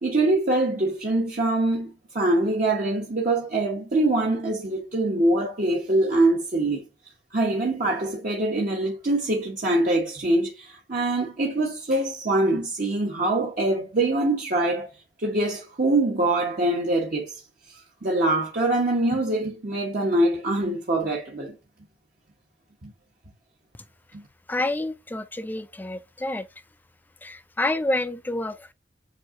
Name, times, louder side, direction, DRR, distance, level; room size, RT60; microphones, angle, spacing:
voice 1, 0.0-6.8 7.3-14.9 15.2-17.4 17.7-21.5 22.8-22.9 24.1-24.2, right 2 dB, 50° right, 1.0 m, -24 dB
voice 2, 24.5-26.5 27.2-28.7, left 2 dB, 10° left, 0.3 m, -28 dB
7.6 x 2.7 x 2.5 m
head